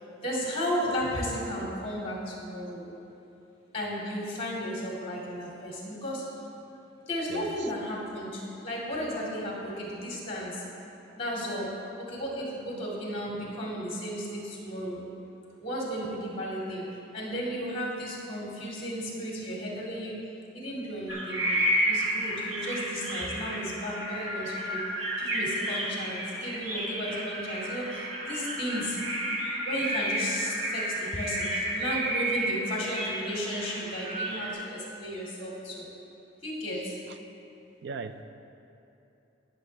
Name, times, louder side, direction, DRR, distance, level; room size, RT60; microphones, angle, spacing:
voice 1, 0.2-2.9 3.7-6.2 7.1-10.6 11.1-11.7 12.0-15.0 15.6-20.2 20.5-21.5 21.9-24.8 25.2-29.0 29.6-35.9 36.4-37.0, equal, 30° left, -4 dB, 2.3 m, -34 dB
voice 2, 7.3-7.7 37.8-38.2, right 4 dB, 60° right, 10 dB, 0.5 m, -38 dB
sound 1, 21.1-34.5, right 1 dB, 80° right, 2.1 m, -31 dB
19.0 x 6.5 x 3.3 m, 2.8 s
head